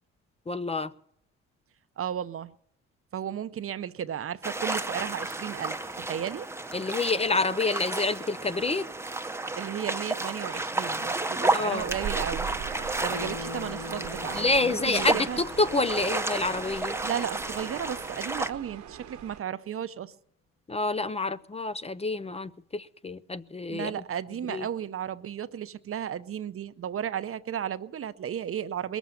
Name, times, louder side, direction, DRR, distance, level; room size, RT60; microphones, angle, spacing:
voice 1, 0.5-0.9 6.7-8.9 11.5-11.9 14.3-17.0 20.7-23.9 24.5-24.6, left 3 dB, 20° left, 0.5 m, -28 dB
voice 2, 2.0-2.5 3.1-6.5 9.6-12.5 13.0-15.4 17.0-20.1 23.7-29.0, right 9 dB, 45° right, 0.7 m, -34 dB
sound 1, 4.4-18.5, right 2 dB, 10° right, 0.8 m, -32 dB
sound 2, 11.8-19.4, right 9 dB, 65° right, 1.2 m, -41 dB
Guitar, 13.1-16.4 16.7-16.8, left 3 dB, 45° left, 1.7 m, -42 dB
21.0 x 7.2 x 8.9 m
cardioid pair, 90°, 30 cm